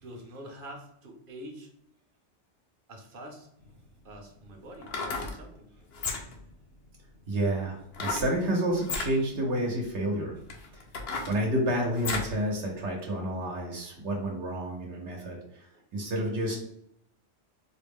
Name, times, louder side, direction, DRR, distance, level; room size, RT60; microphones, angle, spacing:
voice 1, 0.0-1.7 2.9-3.5 4.0-5.9, right 1 dB, 50° right, 2 dB, 0.9 m, -45 dB
sound 1, 3.6-3.7 4.7-5.4 5.9-6.5 7.9-8.3 8.8-9.1 9.8-9.9 10.5-12.4 12.8-12.9, left 4 dB, 65° left, 0.9 m, -33 dB
voice 2, 7.3-10.3 10.7-10.8 11.3-16.6, right 1 dB, 75° right, -1 dB, 1.1 m, -30 dB
4.4 x 2.0 x 3.5 m, 0.74 s
omnidirectional pair, 1.2 m